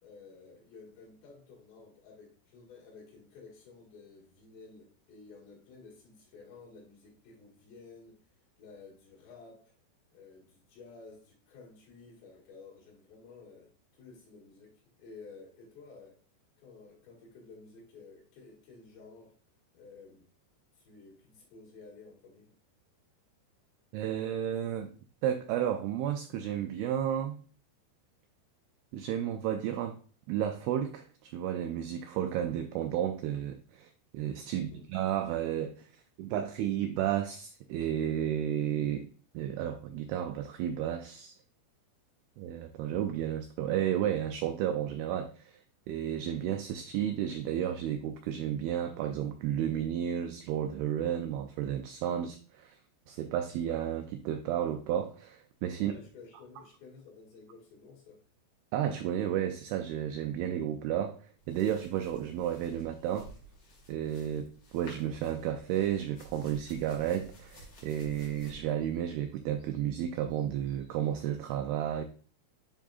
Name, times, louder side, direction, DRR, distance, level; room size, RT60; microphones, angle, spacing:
voice 1, 0.0-8.2 8.6-9.8 10.1-16.2 16.6-19.4 19.7-20.3 20.7-22.5 34.5-34.9 55.7-58.2, left 4 dB, 75° left, -2 dB, 4.3 m, -53 dB
voice 2, 23.9-24.9 25.2-27.4 28.9-30.0 30.3-35.9 36.2-39.1 39.3-41.4 42.4-45.6 45.9-52.8 53.1-55.9 58.7-61.2 61.5-63.3 63.9-72.0, right 10 dB, 85° right, 6 dB, 2.2 m, -32 dB
sound 1, 61.4-71.4, right 1 dB, 55° left, 1.2 m, -55 dB
10.5 x 3.7 x 2.4 m, 0.41 s
omnidirectional pair, 5.0 m